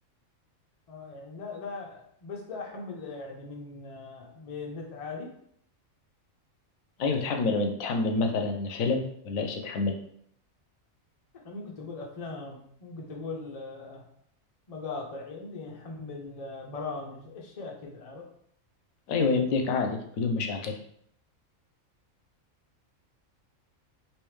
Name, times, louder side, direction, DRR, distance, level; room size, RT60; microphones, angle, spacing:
voice 1, 0.9-5.3 11.3-14.0 14.7-18.3, left 3 dB, 40° left, 0 dB, 0.5 m, -39 dB
voice 2, 7.0-9.9 19.1-20.8, left 4 dB, 80° left, 4 dB, 1.0 m, -27 dB
3.4 x 2.8 x 3.1 m, 0.67 s
omnidirectional pair, 1.4 m